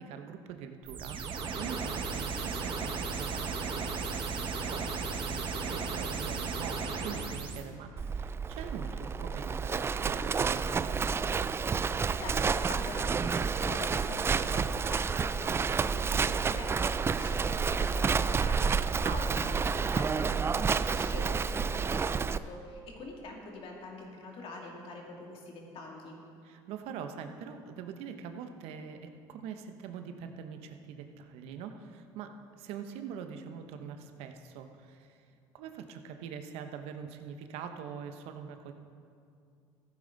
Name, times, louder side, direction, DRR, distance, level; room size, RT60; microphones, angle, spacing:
voice 1, 0.0-11.2 19.0-19.2 26.4-35.2 35.5-38.7, right 7 dB, 75° right, 7 dB, 1.0 m, -43 dB
sound 1, 0.8-7.6, right 4 dB, 50° right, 1.4 m, -35 dB
Livestock farm animals working animals, 8.0-22.4, right 5 dB, 25° right, 0.3 m, -30 dB
voice 2, 12.2-26.2, left 2 dB, 60° left, -1 dB, 2.6 m, -45 dB
15.0 x 9.1 x 4.0 m, 2.4 s
supercardioid pair, 85°, 11 cm